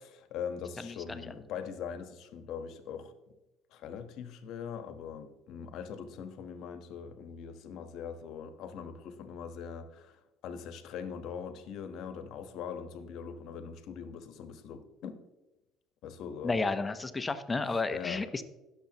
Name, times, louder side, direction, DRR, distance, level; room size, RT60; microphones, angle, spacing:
voice 1, 0.2-3.1 3.7-15.2 16.0-16.6 17.9-18.2, left 7 dB, 70° left, 9 dB, 1.2 m, -41 dB
voice 2, 0.8-1.3 16.4-18.4, left 3 dB, 25° left, 11 dB, 0.9 m, -32 dB
16.5 x 6.9 x 3.0 m, 1.0 s
supercardioid pair, 75°, 0 cm